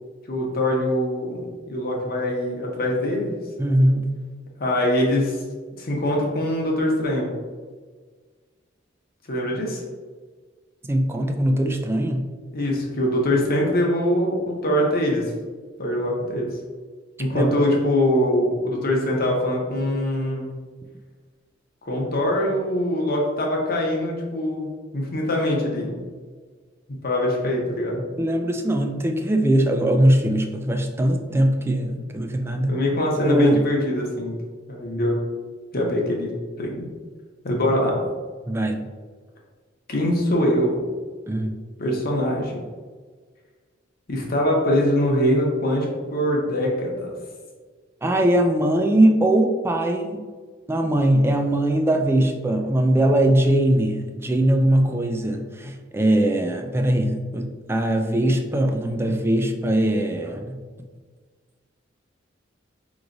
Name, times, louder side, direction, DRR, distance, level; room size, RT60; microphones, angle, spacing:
voice 1, 0.3-3.3 4.6-5.4 5.8-7.3 9.3-9.8 12.5-15.3 15.8-16.6 17.2-20.4 21.8-26.0 27.0-28.0 31.8-31.9 32.7-34.4 34.7-35.2 35.7-36.9 37.4-38.0 39.9-40.9 41.8-42.6 44.1-47.1, left 1 dB, 50° left, -1 dB, 0.9 m, -23 dB
voice 2, 3.6-4.1 10.8-12.2 17.3-17.5 28.2-32.8 33.2-33.6 38.5-38.8 41.3-41.5 48.0-50.2 50.7-60.6, right 1 dB, 15° right, 4 dB, 0.3 m, -21 dB
4.9 x 3.1 x 2.6 m, 1.5 s
head